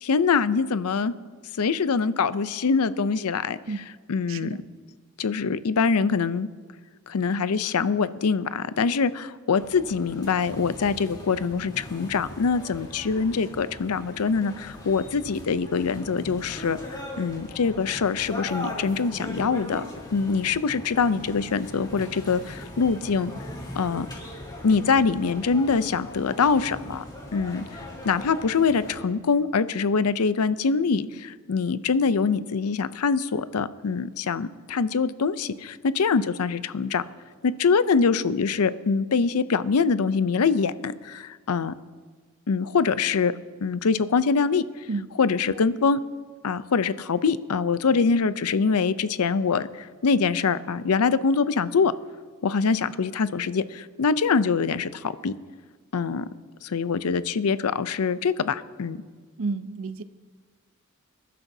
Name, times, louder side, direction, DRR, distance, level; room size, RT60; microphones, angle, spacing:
voice 1, 0.0-1.1 1.6-3.6 4.1-4.6 5.2-6.5 7.1-19.8 20.1-23.3 23.8-24.1 24.6-27.0 27.3-37.0 37.4-41.7 42.5-43.3 43.6-44.6 45.2-46.0 46.4-51.9 52.4-55.3 55.9-56.3 56.6-59.0, left 5 dB, 85° left, 14 dB, 0.5 m, -24 dB
voice 2, 4.3-4.6 44.9-45.1 59.4-60.0, right 3 dB, 60° right, 13 dB, 0.5 m, -31 dB
sound 1, 9.5-29.0, left 1 dB, 20° left, 3.4 m, -40 dB
26.0 x 12.0 x 2.7 m, 1.5 s
head